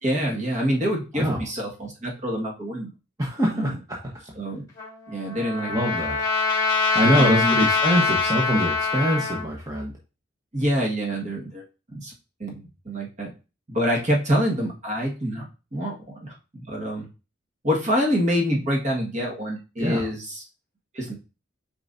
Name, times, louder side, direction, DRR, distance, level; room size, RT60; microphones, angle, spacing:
voice 1, 0.0-2.9 3.5-3.8 4.4-4.6 5.1-5.8 7.2-7.7 10.5-12.1 12.4-13.3 13.7-15.5 15.7-17.1 17.6-20.4 20.9-21.2, equal, 40° right, -1 dB, 1.7 m, -26 dB
voice 2, 3.2-4.0 5.7-6.2 6.9-9.9 19.8-20.1, equal, 20° right, -3 dB, 1.2 m, -23 dB
Trumpet, 4.8-9.4, left 4 dB, 20° left, 2.5 m, -24 dB
7.9 x 4.8 x 2.7 m, 0.32 s
head